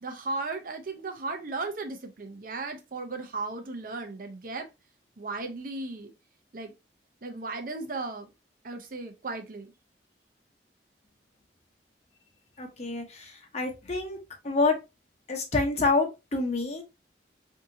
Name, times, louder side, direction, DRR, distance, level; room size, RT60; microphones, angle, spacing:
voice 1, 0.0-4.7 5.2-6.1 6.5-6.7 7.2-8.3 8.6-9.7, right 3 dB, 50° right, 0.6 m, -36 dB
voice 2, 12.6-14.2 14.4-14.8 15.3-16.8, left 3 dB, 40° left, 0.8 m, -27 dB
3.6 x 2.7 x 2.6 m
head